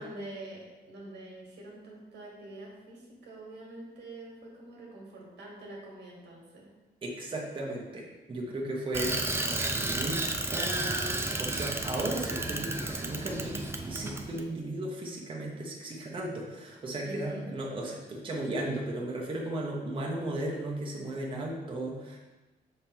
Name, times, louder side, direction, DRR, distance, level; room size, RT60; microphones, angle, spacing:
voice 1, 0.0-6.7 17.0-17.5, right 1 dB, 90° right, -2 dB, 1.8 m, -45 dB
voice 2, 7.0-10.2 10.5-22.2, right 1 dB, 30° right, -3 dB, 1.0 m, -35 dB
Bicycle, 8.9-14.4, right 2 dB, 15° right, 0.5 m, -32 dB
6.4 x 3.6 x 4.4 m, 1.2 s
cardioid pair, 125°, 17 cm